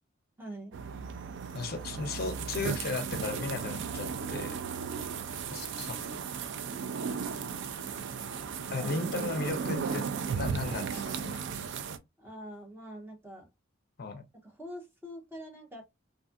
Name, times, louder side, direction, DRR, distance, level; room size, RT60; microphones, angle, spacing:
voice 1, 0.4-0.8 8.7-8.9 12.2-13.5 14.4-15.8, equal, 10° right, 0.6 m, -44 dB
sound 1, 0.7-12.0, right 6 dB, 65° right, 0.3 m, -35 dB
voice 2, 1.5-4.6 5.5-6.0 8.7-11.4 14.0-14.3, left 4 dB, 50° left, 0.5 m, -36 dB
2.5 x 2.4 x 2.4 m
head